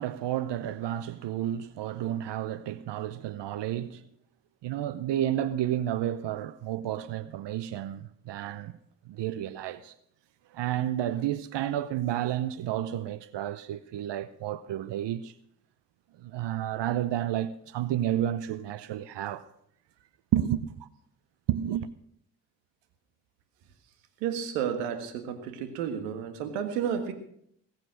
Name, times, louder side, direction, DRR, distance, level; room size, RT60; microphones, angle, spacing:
voice 1, 0.0-4.1 4.6-8.7 9.1-9.9 10.5-15.3 16.2-19.5 20.3-20.9 21.5-21.9, right 12 dB, 65° right, 0.8 m, -31 dB
voice 2, 24.2-27.1, right 8 dB, 85° right, 1.8 m, -31 dB
20.5 x 7.6 x 6.4 m
hypercardioid pair, 45°, 47 cm